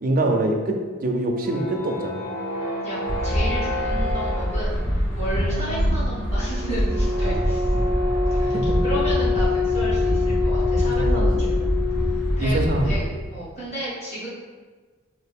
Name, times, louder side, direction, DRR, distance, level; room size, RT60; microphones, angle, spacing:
voice 1, 0.0-2.2 8.5-8.8 11.0-11.5 12.4-12.9, right 1 dB, 40° right, 2 dB, 0.4 m, -24 dB
sound 1, 1.2-12.4, left 4 dB, 85° left, 1.1 m, -28 dB
voice 2, 2.8-7.9 8.3-11.7 12.4-14.3, right 1 dB, 30° left, -9 dB, 1.2 m, -32 dB
sound 2, 3.1-13.0, equal, 65° left, 1.2 m, -24 dB
3.3 x 2.5 x 3.4 m, 1.4 s
head